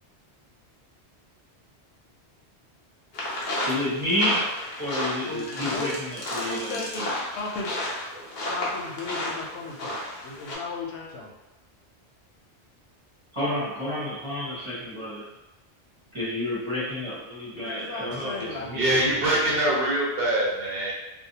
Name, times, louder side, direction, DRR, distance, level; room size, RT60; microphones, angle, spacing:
sound 1, 3.1-10.6, left 1 dB, 50° left, 0.7 m, -32 dB
voice 1, 3.6-4.5 4.8-7.1 13.3-15.2 16.1-18.9, left 1 dB, 30° right, -8 dB, 0.8 m, -30 dB
voice 2, 5.3-5.9 6.4-7.8 8.5-10.0 10.2-11.3 17.5-18.7, left 4 dB, 90° left, -1 dB, 0.9 m, -35 dB
voice 3, 18.7-20.9, right 1 dB, 65° right, -4 dB, 0.8 m, -24 dB
2.6 x 2.0 x 2.7 m, 0.99 s
omnidirectional pair, 1.1 m